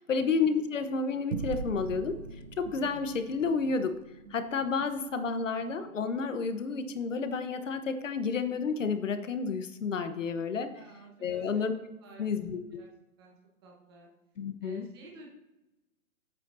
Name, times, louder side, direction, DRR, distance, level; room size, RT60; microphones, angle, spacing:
voice 1, 0.0-2.2 2.6-3.9 4.3-10.7 11.2-11.7 12.2-12.6 14.4-14.9, left 5 dB, 60° left, 9 dB, 1.1 m, -30 dB
sound 1, 1.3-6.1, right 5 dB, 50° right, 0.7 m, -42 dB
voice 2, 10.7-11.7 12.0-12.4 12.7-12.9 13.2-13.4 13.6-14.1 14.6-15.3, right 2 dB, 15° right, -2 dB, 1.3 m, -52 dB
15.5 x 8.4 x 2.7 m, 0.98 s
hypercardioid pair, 175°, 43 cm